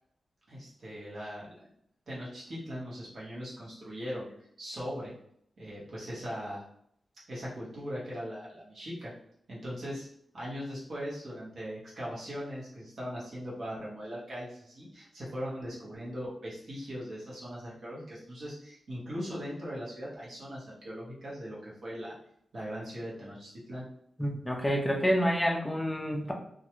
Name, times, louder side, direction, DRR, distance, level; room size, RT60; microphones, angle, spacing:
voice 1, 0.5-1.7 2.1-4.3 4.6-5.1 5.6-6.6 7.3-9.1 9.5-10.1 10.3-22.2 22.5-23.8, equal, 50° right, -6 dB, 1.0 m, -39 dB
voice 2, 24.2-26.3, equal, 5° left, 0 dB, 0.4 m, -28 dB
2.4 x 2.2 x 2.9 m, 0.69 s
wide cardioid pair, 175°, 0 cm